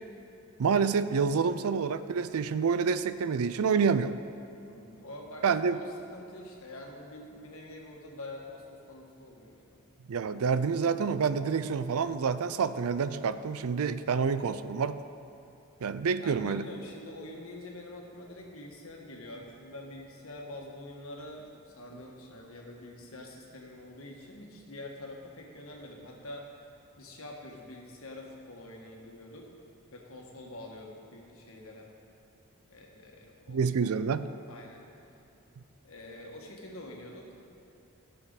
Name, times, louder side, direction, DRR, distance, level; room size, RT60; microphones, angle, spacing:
voice 1, 0.6-4.1 5.4-5.8 10.1-15.0 15.8-16.6 33.5-34.2, right 5 dB, 80° right, 13 dB, 0.4 m, -28 dB
voice 2, 4.6-9.9 16.1-26.7 27.0-29.5 29.9-31.9 32.7-33.9 34.5-34.9 35.8-37.4, left 1 dB, 70° left, -1 dB, 1.6 m, -46 dB
16.0 x 6.8 x 4.1 m, 2.8 s
head